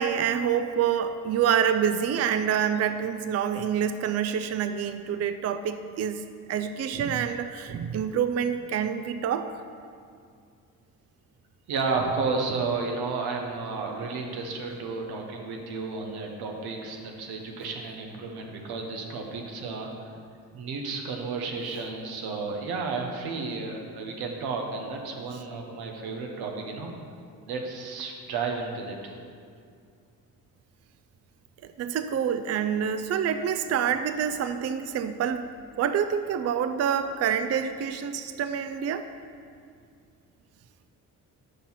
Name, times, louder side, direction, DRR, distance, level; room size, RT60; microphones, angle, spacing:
voice 1, 0.0-9.5 31.8-35.5 35.8-39.1, right 8 dB, 45° right, 10 dB, 0.4 m, -27 dB
voice 2, 11.7-19.9 20.5-26.9 27.5-29.2, right 4 dB, 85° right, 2 dB, 1.1 m, -32 dB
6.8 x 6.0 x 5.7 m, 2.3 s
cardioid pair, 75°, 37 cm